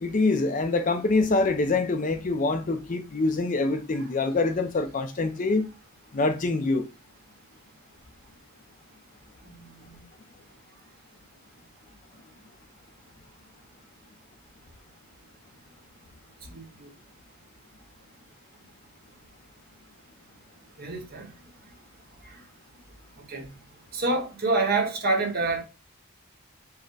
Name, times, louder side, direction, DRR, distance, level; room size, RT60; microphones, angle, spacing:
voice 1, 0.0-5.7 6.1-6.9, left 3 dB, 35° left, 0.5 m, -25 dB
voice 2, 9.4-10.0 16.5-16.9 20.8-21.3 22.3-22.4 23.3-23.5 23.9-25.6, right 3 dB, 45° right, 1.0 m, -28 dB
4.7 x 2.1 x 4.7 m
head